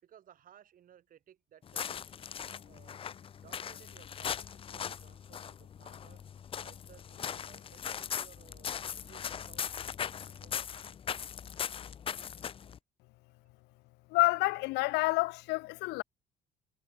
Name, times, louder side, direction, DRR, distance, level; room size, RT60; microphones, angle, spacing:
voice 1, 0.0-3.0 3.4-6.2 6.6-9.9 10.3-10.8 12.6-12.7, right 10 dB, 55° right, 6.3 m, -60 dB
sound 1, 1.6-12.8, left 8 dB, 35° left, 0.5 m, -40 dB
voice 2, 14.1-16.0, left 22 dB, 85° left, 0.4 m, -28 dB
cardioid pair, 110°, 17 cm